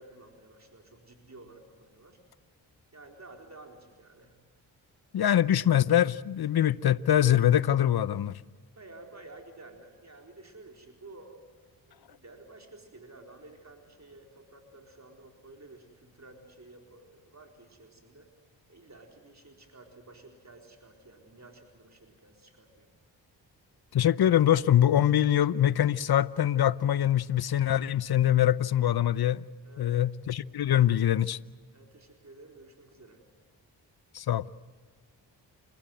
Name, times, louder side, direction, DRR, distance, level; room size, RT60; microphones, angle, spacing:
voice 1, 0.0-2.2 2.9-4.4 8.8-11.4 11.8-18.3 18.7-22.9 29.6-30.0 31.7-33.2, right 2 dB, 35° right, 4.2 m, -52 dB
voice 2, 5.1-8.3 23.9-29.4 29.8-31.4 34.1-34.4, left 11 dB, 55° left, 0.8 m, -24 dB
29.0 x 16.5 x 7.9 m
supercardioid pair, 40°, 46 cm